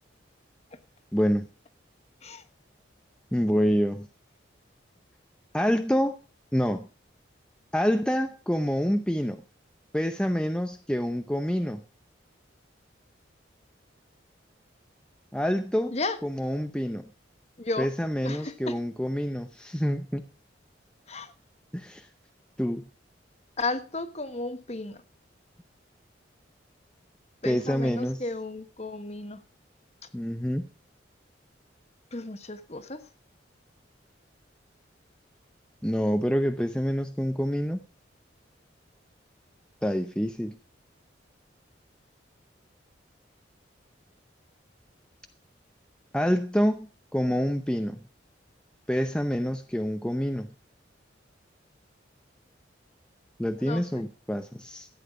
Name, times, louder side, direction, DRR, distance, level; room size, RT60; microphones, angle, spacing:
voice 1, 1.1-1.5 3.3-4.1 5.5-6.2 6.5-6.9 7.7-9.4 9.9-11.8 15.3-16.0 16.2-17.0 17.8-20.3 21.7-22.1 22.6-22.8 27.4-28.2 30.1-30.7 35.8-37.8 39.8-40.6 46.1-48.0 48.9-50.5 53.4-54.9, equal, 5° left, 0.7 m, -27 dB
voice 2, 17.6-17.9 18.2-18.8 21.1-21.3 23.6-25.0 27.4-29.4 32.1-33.0 53.6-54.0, left 3 dB, 35° left, 1.2 m, -34 dB
14.5 x 9.0 x 5.2 m
head